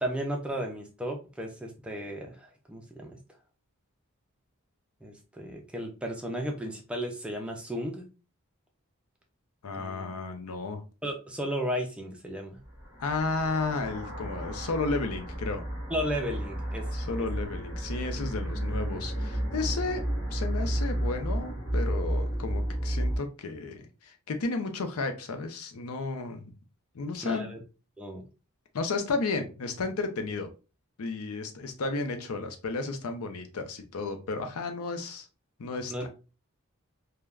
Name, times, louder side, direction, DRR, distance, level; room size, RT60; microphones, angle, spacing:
voice 1, 0.0-3.2 5.0-8.1 9.8-10.1 11.0-12.6 15.9-17.0 27.2-27.6 28.0-28.2 35.9-36.1, equal, 5° right, 2 dB, 0.4 m, -34 dB
voice 2, 9.6-10.8 13.0-15.6 16.9-20.0 20.3-26.4 26.9-27.5 28.7-30.5 31.0-35.3 35.6-36.1, left 3 dB, 75° left, 6 dB, 0.5 m, -33 dB
sound 1, 12.6-23.2, right 1 dB, 45° left, 1.2 m, -32 dB
3.3 x 2.2 x 2.3 m, 0.32 s
head